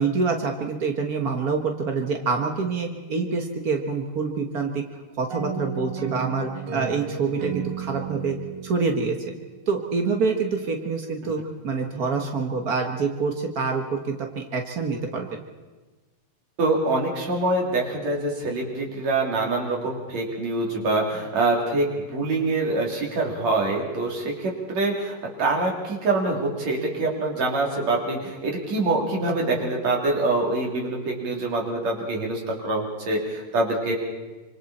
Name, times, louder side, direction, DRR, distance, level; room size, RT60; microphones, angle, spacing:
voice 1, 0.0-4.8 5.2-8.4 8.6-9.2 9.7-15.4, right 4 dB, 90° right, 3 dB, 0.8 m, -26 dB
sound 1, 5.3-9.9, right 7 dB, 70° right, 1.3 m, -34 dB
voice 2, 16.6-33.9, right 2 dB, 50° right, -1 dB, 4.3 m, -25 dB
25.5 x 25.0 x 4.3 m, 1.2 s
omnidirectional pair, 4.1 m